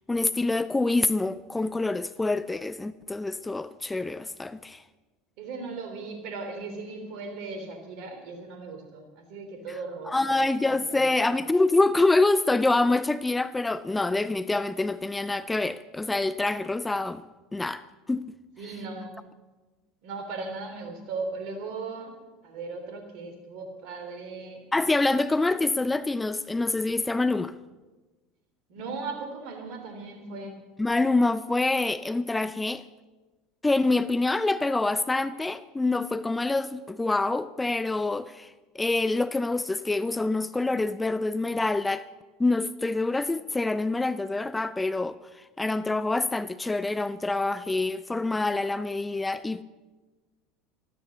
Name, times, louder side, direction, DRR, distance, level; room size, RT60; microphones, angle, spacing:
voice 1, 0.1-4.8 10.1-17.2 17.5-17.8 18.1-18.3 24.7-27.5 30.8-32.8 33.6-42.0 42.4-49.6, left 2 dB, 10° left, 0.5 m, -26 dB
voice 2, 5.4-10.4 10.8-11.3 18.6-19.2 20.0-22.1 22.4-24.6 28.7-30.5, right 4 dB, 55° right, 3.3 m, -37 dB
13.5 x 13.5 x 7.1 m
figure-of-eight pair, 75°, 0 cm